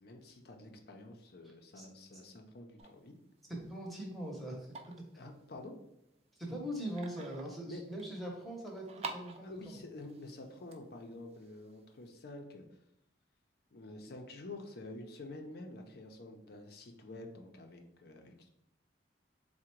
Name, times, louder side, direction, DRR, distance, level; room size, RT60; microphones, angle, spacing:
voice 1, 0.0-3.1 5.2-5.7 7.7-7.8 9.4-12.7 13.7-18.5, left 2 dB, 55° left, 4 dB, 0.5 m, -48 dB
sound 1, 2.8-12.2, right 4 dB, 35° right, 0.3 m, -51 dB
voice 2, 3.7-4.7 6.4-9.7, equal, ahead, -2 dB, 0.8 m, -41 dB
3.7 x 2.1 x 4.4 m, 0.82 s
head